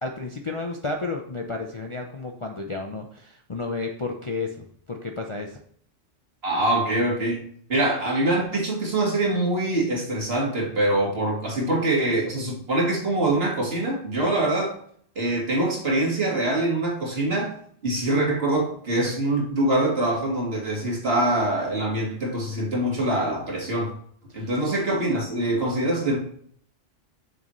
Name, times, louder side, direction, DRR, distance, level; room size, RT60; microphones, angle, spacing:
voice 1, 0.0-5.6 24.3-24.5, left 3 dB, 35° left, 1 dB, 0.5 m, -32 dB
voice 2, 6.4-7.4 7.7-14.7 15.2-17.5 17.8-23.9 24.3-26.2, right 1 dB, 55° right, -2 dB, 2.1 m, -24 dB
6.9 x 6.5 x 3.1 m, 0.62 s
omnidirectional pair, 1.2 m